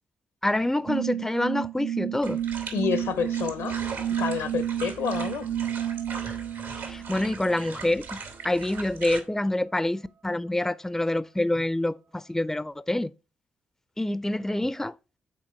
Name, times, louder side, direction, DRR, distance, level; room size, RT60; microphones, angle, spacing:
voice 1, 0.4-2.4 6.9-13.1 14.0-14.9, left 1 dB, 10° left, 0.4 m, -27 dB
sound 1, 0.9-7.9, right 10 dB, 65° right, 0.5 m, -31 dB
sound 2, 2.2-9.2, right 4 dB, 85° right, 2.3 m, -40 dB
voice 2, 2.7-3.8 4.2-5.5, left 7 dB, 80° left, 0.9 m, -28 dB
7.5 x 4.6 x 5.7 m
hypercardioid pair, 40°, 5 cm